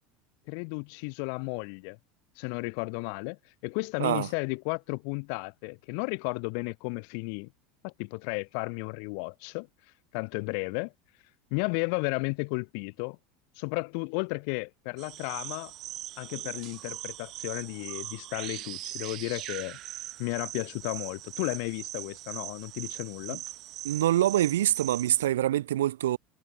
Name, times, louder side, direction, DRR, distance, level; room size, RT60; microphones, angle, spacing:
voice 1, 0.5-2.0 2.4-7.5 7.8-9.7 10.1-10.9 11.5-13.2 13.6-15.7 16.2-19.8 20.2-23.4, left 40 dB or more, 65° left, 0.7 m, -33 dB
sound 1, 15.0-25.3, right 15 dB, 50° right, 1.3 m, -41 dB
voice 2, 23.8-26.2, right 13 dB, 90° right, 0.4 m, -25 dB
hypercardioid pair, 100°, 0 cm